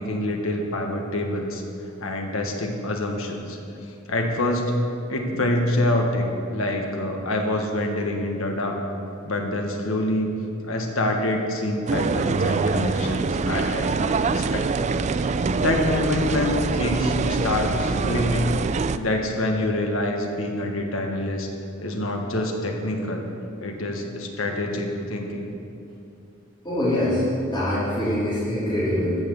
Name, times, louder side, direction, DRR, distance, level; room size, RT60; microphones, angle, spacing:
voice 1, 0.0-1.6 2.0-3.6 4.1-4.7 5.1-8.8 9.2-10.3 10.7-14.9 15.2-18.6 18.9-21.5 21.8-23.3 23.6-25.4, left 1 dB, 75° left, 2 dB, 1.5 m, -26 dB
sound 1, 11.9-19.0, right 4 dB, 35° right, 0.3 m, -24 dB
voice 2, 26.6-27.2 27.5-29.2, left 1 dB, 25° left, -12 dB, 2.9 m, -24 dB
14.0 x 5.9 x 7.0 m, 2.7 s
head